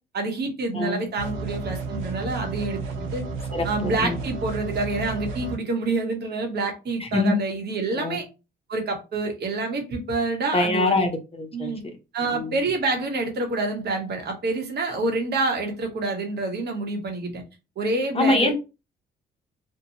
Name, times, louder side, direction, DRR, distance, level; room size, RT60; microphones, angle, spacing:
voice 1, 0.1-3.2 3.6-8.2 8.7-11.1 11.5-11.8 12.1-17.4 17.8-18.5, right 3 dB, 55° right, 1.0 m, -27 dB
sound 1, 1.2-5.6, right 4 dB, 90° right, 0.8 m, -32 dB
voice 2, 3.5-4.2 7.0-7.4 7.9-8.2 10.5-11.7 12.3-12.5 18.1-18.5, left 2 dB, 30° left, 0.7 m, -24 dB
2.6 x 2.2 x 2.8 m
cardioid pair, 90°, 20 cm